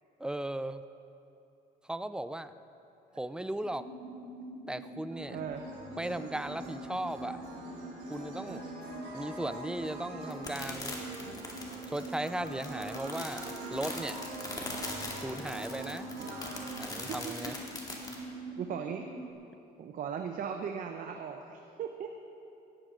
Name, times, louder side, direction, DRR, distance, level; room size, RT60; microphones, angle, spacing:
voice 1, 0.2-0.8 1.9-2.5 3.1-3.8 4.7-5.4 6.0-7.4 8.1-8.6 9.1-11.0 11.9-13.4 13.7-14.2 15.2-16.1 16.8-17.5, right 1 dB, 5° right, 12 dB, 0.5 m, -36 dB
sound 1, 3.6-19.3, right 1 dB, 40° left, 3.4 m, -45 dB
sound 2, 5.1-17.4, right 2 dB, 75° right, 3.0 m, -45 dB
voice 2, 5.3-5.6 8.5-8.6 17.1-17.5 18.6-19.1 19.8-22.1, right 7 dB, 55° right, 5 dB, 0.8 m, -38 dB
sound 3, 10.3-18.2, left 2 dB, 20° left, 2.3 m, -41 dB
17.5 x 14.0 x 3.8 m, 2.8 s
cardioid pair, 110°, 17 cm